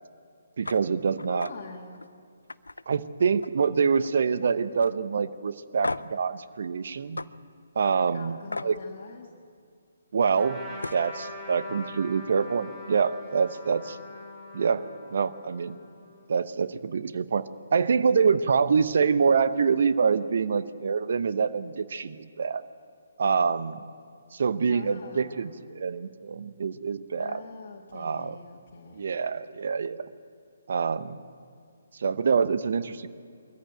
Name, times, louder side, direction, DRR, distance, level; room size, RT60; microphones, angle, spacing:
sound 1, 0.6-0.8 1.2-1.5 1.9-2.1 2.5-3.7 4.0-4.4 4.8-4.9 5.8-6.2 7.2-7.3 8.5-8.7 10.4-10.5 10.8-11.1, left 2 dB, 85° left, 0.5 m, -35 dB
voice 1, 0.6-1.5 2.9-7.2 7.8-8.8 10.1-10.6 10.9-14.0 14.5-14.8 15.1-15.8 16.3-17.4 17.7-22.6 23.2-23.8 24.3-27.4 27.9-28.4 28.9-30.0 30.7-31.2 31.9-33.1, right 5 dB, 55° right, 13 dB, 0.9 m, -26 dB
voice 2, 1.2-2.1 8.0-9.3 24.7-25.6 27.2-29.1, left 4 dB, 50° left, -1 dB, 1.8 m, -44 dB
Trumpet, 10.4-16.2, left 1 dB, 25° right, 7.2 m, -43 dB
22.5 x 14.5 x 9.0 m, 2.3 s
figure-of-eight pair, 140°, 0 cm